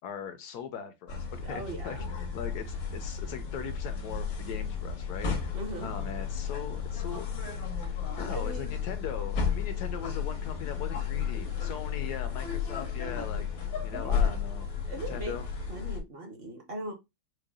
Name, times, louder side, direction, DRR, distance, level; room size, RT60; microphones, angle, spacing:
voice 1, 0.0-5.5 5.8-7.3 7.7-13.5 13.8-14.7 15.1-15.4, left 7 dB, 70° left, 1.0 m, -40 dB
sound 1, 1.1-16.0, left 6 dB, 85° left, 2.0 m, -33 dB
voice 2, 1.4-2.0 5.5-5.9 8.3-8.8 13.9-14.3 14.9-15.4 15.7-16.9, right 1 dB, 45° right, 0.9 m, -39 dB
6.4 x 2.2 x 2.3 m
omnidirectional pair, 2.0 m